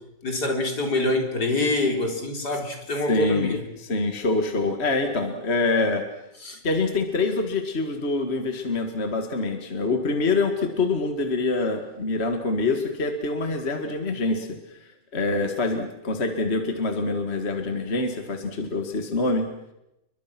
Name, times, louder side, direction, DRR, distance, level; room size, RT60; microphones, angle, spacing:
voice 1, 0.2-3.6 6.4-6.6, left 2 dB, 60° left, 3 dB, 4.6 m, -25 dB
voice 2, 3.1-6.0 6.6-19.5, left 3 dB, 35° left, 6 dB, 2.2 m, -25 dB
30.0 x 23.5 x 6.1 m, 0.87 s
omnidirectional pair, 1.9 m